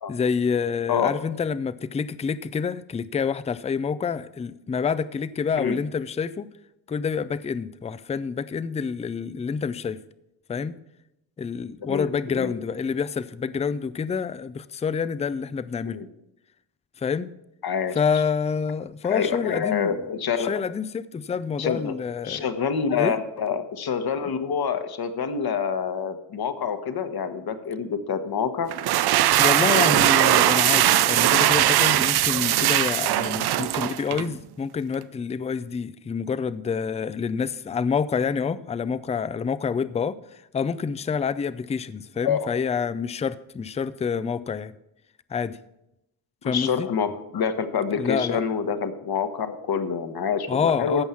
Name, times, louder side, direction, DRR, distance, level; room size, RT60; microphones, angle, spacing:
voice 1, 0.1-6.5 6.9-10.0 10.5-10.8 11.4-16.0 17.0-17.3 17.9-20.0 20.4-22.5 22.9-23.2 29.4-44.7 45.3-45.6 46.4-46.9 48.0-48.4 50.5-51.0, left 6 dB, 15° left, 0.4 m, -27 dB
voice 2, 11.8-12.5 15.9-16.1 17.6-18.0 19.0-20.5 21.6-22.0 22.2-28.7 42.2-42.5 46.4-51.0, left 6 dB, 50° left, 1.3 m, -27 dB
sound 1, 28.7-34.3, right 13 dB, 55° right, 0.5 m, -20 dB
15.5 x 5.5 x 5.9 m
supercardioid pair, 70°, 48 cm